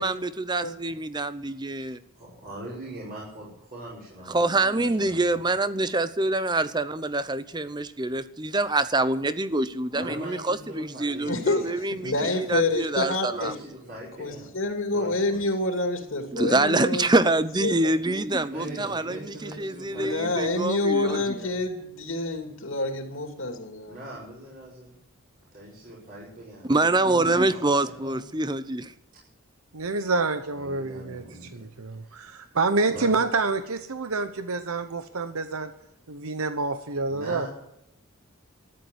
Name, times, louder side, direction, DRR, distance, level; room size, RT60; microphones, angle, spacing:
voice 1, 0.0-2.0 4.3-13.5 16.3-21.4 26.6-28.9, right 2 dB, 20° right, 14 dB, 0.7 m, -26 dB
voice 2, 2.1-5.4 9.9-12.8 13.3-14.5 14.9-15.5 18.5-20.5 21.0-21.5 23.9-25.0 25.5-26.7 27.1-28.2 30.5-31.6 32.0-32.4 32.9-33.1 37.1-37.5, right 1 dB, 40° right, -6 dB, 5.7 m, -42 dB
voice 3, 11.2-13.6 14.2-17.1 17.6-17.9 19.9-24.0, left 2 dB, 65° left, 4 dB, 2.6 m, -28 dB
voice 4, 29.7-31.2 31.5-35.7 36.1-37.5, right 3 dB, 75° right, 9 dB, 1.0 m, -27 dB
14.0 x 11.0 x 8.2 m, 0.83 s
head